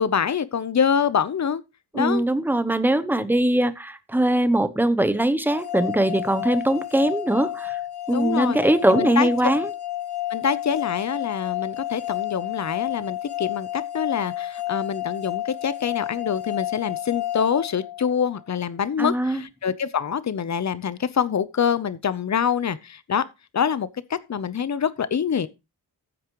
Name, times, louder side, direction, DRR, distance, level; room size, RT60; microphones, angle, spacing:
voice 1, 0.0-1.6 1.9-2.2 8.1-8.6 8.9-9.3 10.3-23.2 23.5-25.5, left 7 dB, 45° left, 0.8 m, -25 dB
voice 2, 1.9-7.8 8.1-9.7 19.0-19.4, right 1 dB, 5° right, 0.8 m, -21 dB
sound 1, 5.5-18.4, left 13 dB, 75° left, 1.1 m, -31 dB
15.0 x 8.6 x 3.1 m
wide cardioid pair, 180°, 39 cm